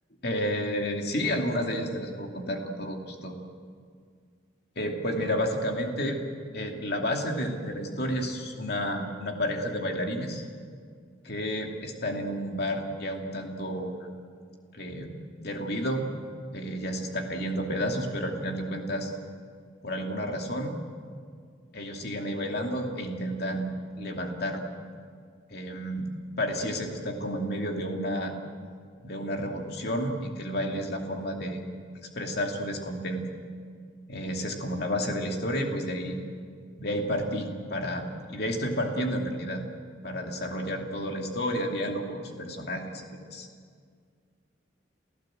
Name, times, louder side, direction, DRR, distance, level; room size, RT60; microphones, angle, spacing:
voice 1, 0.2-3.3 4.8-6.2 6.5-10.4 11.2-14.1 14.7-16.1 16.5-19.1 19.8-20.8 21.7-24.7 25.5-26.1 26.4-28.3 29.0-31.6 32.1-33.2 34.1-36.2 36.8-39.6 40.0-43.5, equal, 55° left, 2 dB, 2.6 m, -31 dB
28.5 x 15.5 x 7.8 m, 2.1 s
head